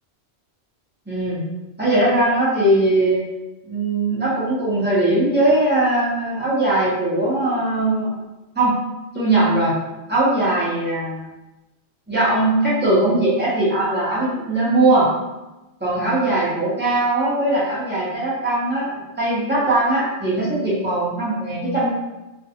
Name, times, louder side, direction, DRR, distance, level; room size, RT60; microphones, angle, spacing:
voice 1, 1.1-1.4 1.8-3.2 3.7-8.1 8.5-8.8 9.1-9.7 10.1-11.2 12.1-15.1 15.8-21.9, right 2 dB, 10° right, -9 dB, 0.8 m, -20 dB
2.5 x 2.3 x 2.7 m, 1.0 s
omnidirectional pair, 1.1 m